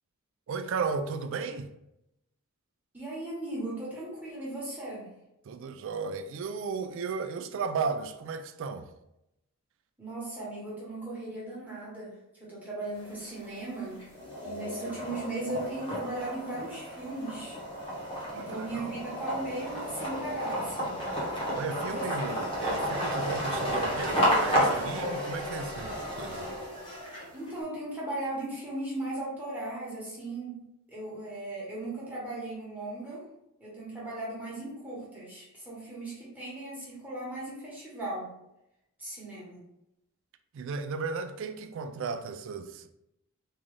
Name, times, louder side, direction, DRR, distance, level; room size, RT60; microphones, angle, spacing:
voice 1, 0.5-1.7 5.4-8.9 18.3-19.0 21.5-26.5 40.5-42.9, right 5 dB, 60° right, 0.3 m, -35 dB
voice 2, 2.9-5.1 10.0-14.1 14.4-17.6 18.3-21.0 21.8-22.3 27.3-30.6 30.9-33.3 33.6-38.3 39.0-39.6, right 2 dB, 5° right, 1.2 m, -37 dB
sound 1, 13.0-13.6 14.0-27.5, equal, 25° left, 1.1 m, -32 dB
3.6 x 2.6 x 3.2 m
head